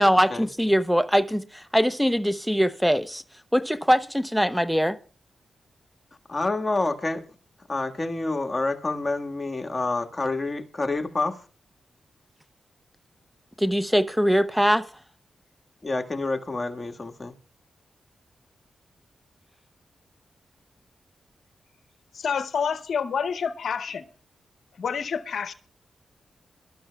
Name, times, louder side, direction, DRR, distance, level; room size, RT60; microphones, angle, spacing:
voice 1, 0.0-3.2 3.5-5.0 13.6-14.8, equal, ahead, 0.7 m, -22 dB
voice 2, 6.3-7.2 7.7-11.4 15.8-17.3, left 2 dB, 35° left, 1.6 m, -28 dB
voice 3, 22.1-24.0 24.8-25.5, left 6 dB, 75° left, 0.7 m, -28 dB
22.5 x 12.5 x 2.3 m
supercardioid pair, 45°, 0 cm